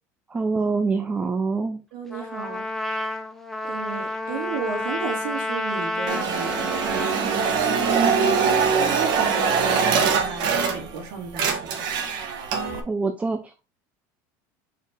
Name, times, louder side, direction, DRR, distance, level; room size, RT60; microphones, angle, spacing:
voice 1, 0.3-1.8 12.7-13.6, right 4 dB, 15° right, 0.6 m, -25 dB
voice 2, 1.9-2.7 3.1-3.2 3.6-11.9, right 6 dB, 70° right, 3.0 m, -34 dB
Trumpet, 2.1-10.2, left 2 dB, 5° left, 1.0 m, -31 dB
sound 1, 6.1-11.0 11.3-12.8, right 6 dB, 55° right, 1.7 m, -23 dB
5.0 x 4.5 x 4.7 m
supercardioid pair, 135°, 9 cm